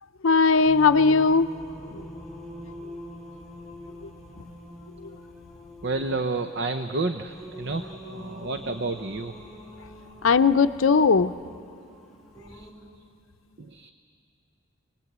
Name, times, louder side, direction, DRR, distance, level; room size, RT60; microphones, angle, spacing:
voice 1, 0.2-1.5 1.9-2.0 10.2-11.3, left 4 dB, 70° left, 11 dB, 0.6 m, -18 dB
Singing, 0.6-12.7, equal, ahead, 3.9 m, -44 dB
voice 2, 5.8-9.4 12.5-12.7 13.6-13.9, right 3 dB, 50° right, 8 dB, 0.7 m, -30 dB
28.5 x 20.5 x 8.1 m, 2.4 s
head